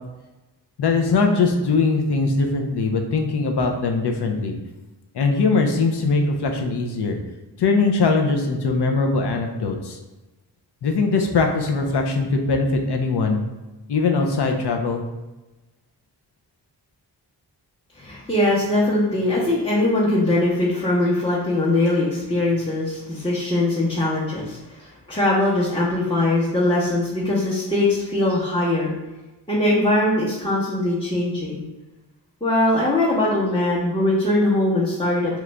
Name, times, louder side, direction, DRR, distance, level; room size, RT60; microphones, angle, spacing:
voice 1, 0.8-4.5 5.1-7.2 7.6-10.0 10.8-13.4 13.9-15.0, left 3 dB, 75° left, 3 dB, 0.6 m, -21 dB
voice 2, 17.9-28.9 29.5-31.6 32.4-35.4, left 1 dB, 10° left, -8 dB, 0.8 m, -21 dB
3.0 x 2.4 x 3.2 m, 1.1 s
wide cardioid pair, 60°, 41 cm